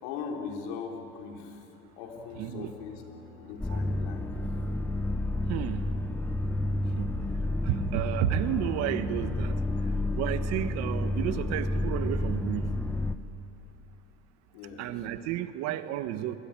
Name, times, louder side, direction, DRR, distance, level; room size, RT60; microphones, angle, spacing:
voice 1, 0.0-1.7 1.9-3.0 3.3-4.3 14.5-14.9, left 6 dB, 75° left, 2 dB, 4.2 m, -40 dB
sound 1, 2.1-12.2, left 7 dB, 90° left, 1.9 m, -51 dB
voice 2, 2.4-2.7 3.7-3.8 5.5-5.9 7.0-7.1 7.6-9.6 10.2-12.7 14.8-16.4, right 12 dB, 60° right, 11 dB, 1.4 m, -31 dB
sound 2, 3.6-13.1, left 1 dB, 5° left, 1.1 m, -30 dB
27.0 x 22.5 x 9.0 m, 2.8 s
supercardioid pair, 115°, 30 cm